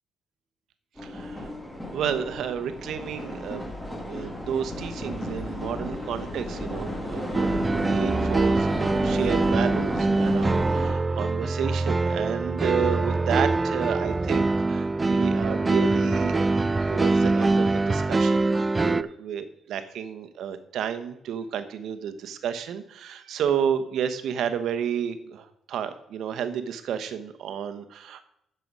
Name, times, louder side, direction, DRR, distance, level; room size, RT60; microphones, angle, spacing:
sound 1, 1.0-10.9, left 1 dB, 5° left, 1.9 m, -33 dB
voice 1, 1.0-1.5 1.9-3.7 4.0-16.5 16.9-28.2, right 8 dB, 75° right, 10 dB, 1.0 m, -31 dB
sound 2, 7.3-19.0, right 3 dB, 20° right, 0.3 m, -23 dB
9.2 x 6.9 x 5.4 m, 0.78 s
cardioid pair, 90°, 0 cm